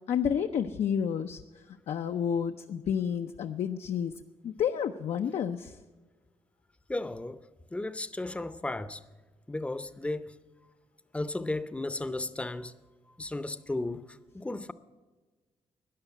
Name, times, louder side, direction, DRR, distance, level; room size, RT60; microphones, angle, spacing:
voice 1, 0.1-4.1 4.4-5.8, left 8 dB, 75° left, 0.6 m, -30 dB
voice 2, 6.9-7.4 7.7-9.0 9.5-10.3 11.1-12.7 13.2-14.0 14.3-14.7, left 2 dB, 10° left, 0.6 m, -34 dB
13.0 x 10.0 x 7.9 m
cardioid pair, 125°, 11 cm